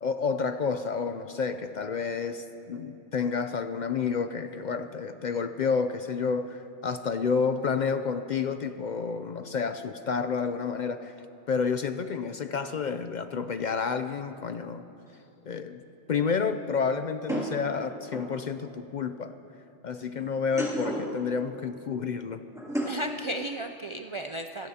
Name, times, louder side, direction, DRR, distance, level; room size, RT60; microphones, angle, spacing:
voice 1, 0.0-11.1 11.5-14.8 15.5-15.8 16.1-19.3 19.8-22.4, left 5 dB, 55° left, 9 dB, 0.5 m, -30 dB
sound 1, 15.1-15.2 17.3-18.4 20.4-21.2 22.5-23.1, equal, 5° right, 2.6 m, -32 dB
voice 2, 22.8-24.7, right 1 dB, 45° right, 5 dB, 0.4 m, -35 dB
25.0 x 16.5 x 2.8 m, 2.8 s
omnidirectional pair, 1.1 m